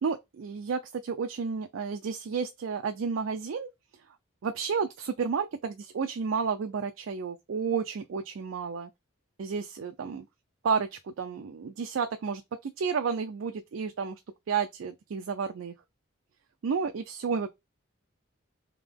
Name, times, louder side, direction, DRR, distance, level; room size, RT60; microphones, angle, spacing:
voice 1, 0.0-3.7 4.4-8.9 9.4-10.2 10.6-14.2 14.5-15.7 16.6-17.5, right 5 dB, 75° right, 0.4 m, -31 dB
3.7 x 2.8 x 3.4 m
head